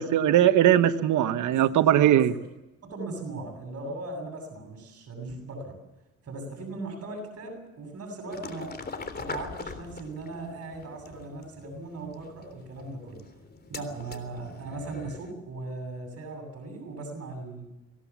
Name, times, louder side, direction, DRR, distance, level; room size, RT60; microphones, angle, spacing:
voice 1, 0.0-2.3, right 11 dB, 75° right, 9 dB, 1.1 m, -20 dB
voice 2, 2.8-5.7 6.2-8.7 9.2-13.2 13.7-17.7, right 2 dB, 55° right, 3 dB, 7.6 m, -38 dB
sound 1, 8.3-15.3, left 4 dB, 30° left, 3.5 m, -42 dB
25.0 x 17.5 x 7.3 m, 0.94 s
cardioid pair, 90°, 30 cm